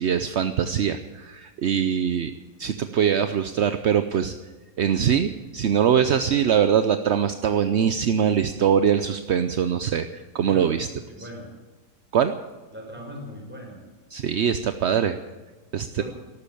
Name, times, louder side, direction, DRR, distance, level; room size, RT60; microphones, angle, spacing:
voice 1, 0.0-2.3 2.6-4.3 4.8-10.9 12.1-12.3 14.1-15.2 15.7-16.0, right 8 dB, 55° right, 10 dB, 0.7 m, -22 dB
voice 2, 11.1-11.5 12.7-13.8 16.0-16.1, equal, 5° right, -1 dB, 5.5 m, -38 dB
14.0 x 12.0 x 8.6 m, 1.3 s
omnidirectional pair, 1.8 m